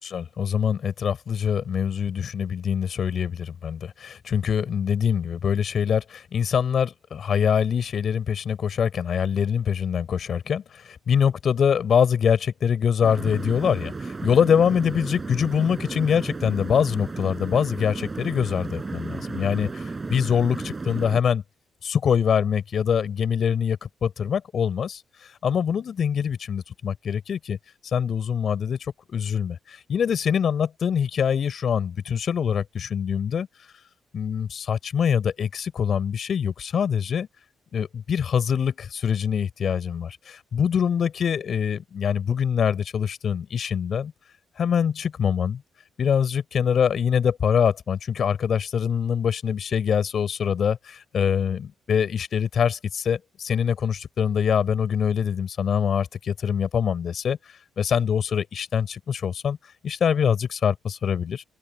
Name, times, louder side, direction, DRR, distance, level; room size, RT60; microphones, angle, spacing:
voice 1, 0.0-21.4 21.8-27.6 27.8-28.8 29.1-33.5 34.1-37.3 37.7-44.1 44.6-45.6 46.0-59.6 59.8-61.4, left 7 dB, 55° left, 4.9 m, -24 dB
sound 1, 13.0-21.2, right 3 dB, 25° right, 7.1 m, -34 dB
open air
cardioid pair, 90°, 0 cm